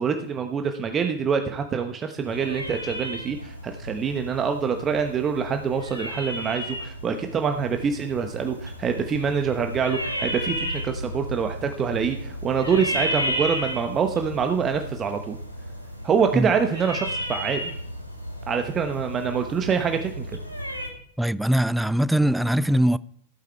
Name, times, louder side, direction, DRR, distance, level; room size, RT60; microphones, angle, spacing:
voice 1, 0.0-15.4 16.0-17.7 18.5-20.3, right 6 dB, 25° right, 1.1 m, -25 dB
sound 1, 2.2-20.9, equal, 90° right, 2.8 m, -33 dB
voice 2, 21.2-23.0, right 1 dB, ahead, 0.4 m, -21 dB
15.0 x 8.9 x 4.5 m
figure-of-eight pair, 90°, 0 cm